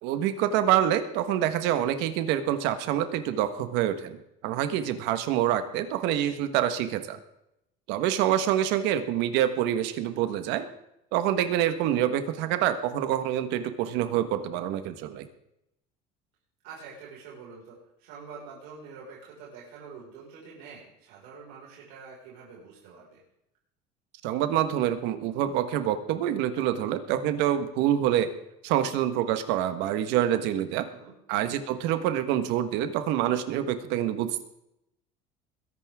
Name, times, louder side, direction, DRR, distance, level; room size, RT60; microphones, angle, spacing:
voice 1, 0.0-4.2 4.4-7.2 7.9-10.7 11.1-15.3 24.2-28.3 28.6-30.9 31.3-34.4, right 11 dB, 70° right, 9 dB, 1.5 m, -26 dB
voice 2, 16.6-23.2 30.9-31.1, right 5 dB, 90° right, -5 dB, 5.3 m, -46 dB
21.5 x 11.0 x 3.7 m, 0.84 s
cardioid pair, 160°, 18 cm